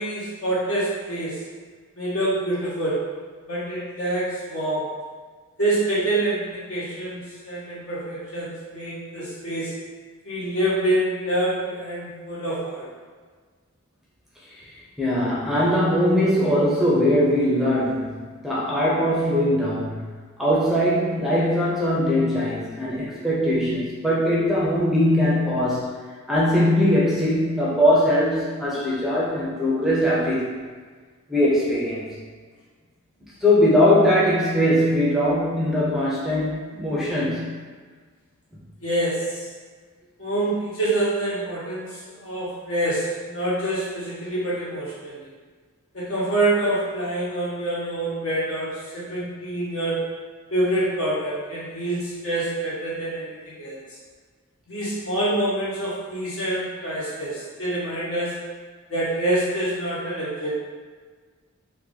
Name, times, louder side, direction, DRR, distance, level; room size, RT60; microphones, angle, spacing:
voice 1, 0.0-1.4 1.9-3.1 3.5-4.9 5.6-9.7 10.2-12.9 38.8-39.5 40.2-45.3 45.9-50.0 50.5-53.8 54.7-58.4 58.9-60.5, right 1 dB, 70° left, -9 dB, 1.4 m, -26 dB
voice 2, 15.0-20.0 20.4-25.9 26.3-30.5 31.3-32.1 33.4-37.5, equal, ahead, -7 dB, 0.5 m, -21 dB
2.9 x 2.6 x 3.8 m, 1.5 s
head